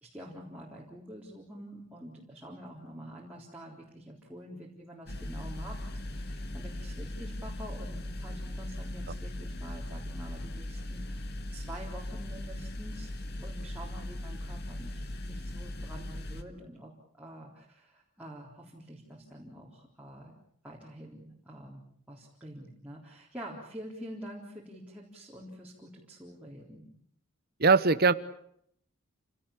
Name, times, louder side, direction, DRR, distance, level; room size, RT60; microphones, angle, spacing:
voice 1, 0.0-13.1 13.4-15.0 15.3-20.3 20.6-26.9, equal, 5° right, -5 dB, 3.8 m, -47 dB
sound 1, 5.1-16.4, left 1 dB, 45° left, 2.0 m, -39 dB
voice 2, 27.6-28.1, right 4 dB, 45° right, 14 dB, 1.0 m, -21 dB
29.0 x 17.5 x 8.6 m, 0.70 s
head